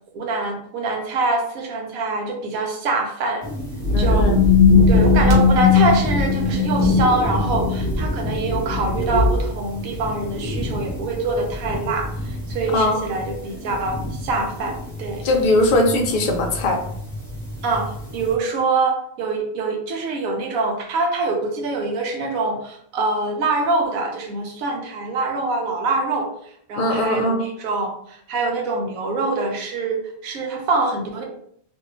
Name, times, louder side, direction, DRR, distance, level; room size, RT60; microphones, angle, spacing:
voice 1, 0.1-3.4 4.0-4.4 4.9-15.3 17.6-26.3 26.7-31.2, right 3 dB, 75° right, 2 dB, 1.1 m, -24 dB
sound 1, 3.4-18.3, left 1 dB, 5° right, 1.1 m, -29 dB
sound 2, 3.8-9.4, left 4 dB, 45° right, 1.0 m, -18 dB
voice 2, 3.9-4.4 12.7-13.0 15.2-16.8 26.8-27.4, left 1 dB, 60° left, 2 dB, 0.5 m, -20 dB
2.6 x 2.6 x 2.9 m, 0.66 s
omnidirectional pair, 1.5 m